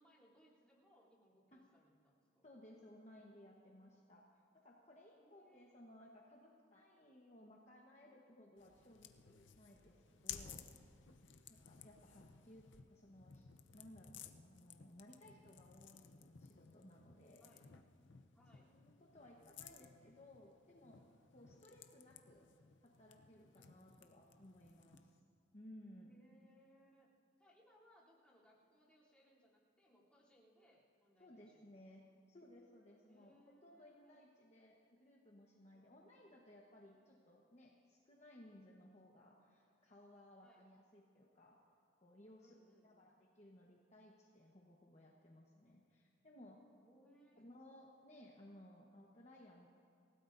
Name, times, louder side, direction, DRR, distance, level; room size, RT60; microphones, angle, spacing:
voice 1, 0.0-2.6 5.2-5.8 10.5-10.8 17.4-17.6 18.3-18.7 21.3-21.7 23.5-23.9 26.1-27.1 27.4-31.8 33.1-34.2 35.7-36.2 38.9-39.0 40.4-40.7 42.4-43.1 46.8-47.4, equal, 5° left, -8 dB, 3.2 m, -70 dB
voice 2, 2.4-4.3 4.5-10.7 11.5-13.5 13.7-17.5 18.7-21.0 21.3-22.5 22.8-25.2 25.5-26.2 31.2-41.6 42.0-42.5 42.8-46.6 47.4-49.7, left 1 dB, 35° left, -2 dB, 1.1 m, -61 dB
sound 1, 8.6-25.2, left 8 dB, 60° left, 0.7 m, -57 dB
27.5 x 17.0 x 2.6 m, 2.3 s
head